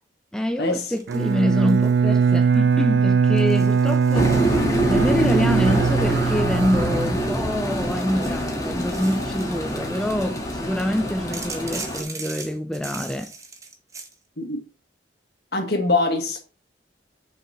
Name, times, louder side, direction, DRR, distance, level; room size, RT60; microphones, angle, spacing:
voice 1, 0.3-4.4 4.9-13.3, equal, 5° left, 0.3 m, -26 dB
sound 1, 0.9-2.0 2.3-2.7 3.4-5.0 5.6-7.4 7.8-10.0 11.3-14.1, right 3 dB, 20° right, 1.0 m, -40 dB
Bowed string instrument, 1.1-7.7, right 6 dB, 65° right, 0.4 m, -21 dB
sound 2, 4.1-12.0, equal, 20° left, 1.6 m, -25 dB
voice 2, 15.5-16.4, left 2 dB, 60° left, 1.8 m, -23 dB
6.1 x 5.2 x 4.3 m
head